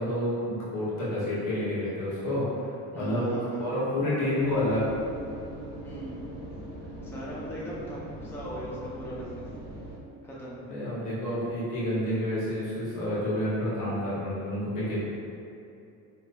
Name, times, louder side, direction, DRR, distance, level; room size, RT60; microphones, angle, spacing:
voice 1, 0.0-2.7 2.9-3.3 3.6-4.9 10.7-15.0, left 1 dB, 55° left, -9 dB, 1.4 m, -29 dB
voice 2, 2.9-3.7 5.8-6.3 7.0-9.5 10.2-10.6, equal, 5° left, -6 dB, 0.5 m, -38 dB
sound 1, 4.4-10.0, right 1 dB, 80° right, 1.1 m, -41 dB
4.2 x 3.1 x 2.2 m, 2.7 s
cardioid pair, 105°, 36 cm